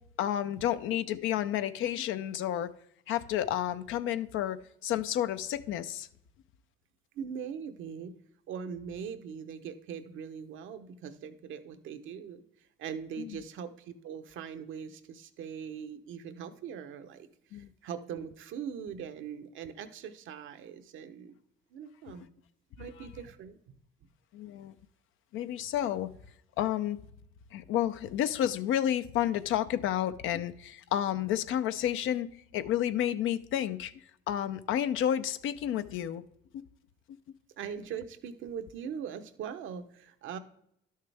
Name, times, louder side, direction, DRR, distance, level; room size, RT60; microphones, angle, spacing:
voice 1, 0.2-2.7 3.1-6.1 13.2-13.4 17.5-17.7 24.3-24.7 25.3-26.1 26.6-27.0 27.5-33.9 34.3-36.2 36.5-36.6, left 11 dB, 85° left, 0.5 m, -31 dB
voice 2, 7.1-8.1 8.5-12.4 12.8-17.3 17.5-21.4 21.7-22.3 22.8-23.6 25.8-26.0 37.6-40.4, right 7 dB, 80° right, 0.8 m, -41 dB
11.5 x 6.5 x 3.3 m
cardioid pair, 90°, 20 cm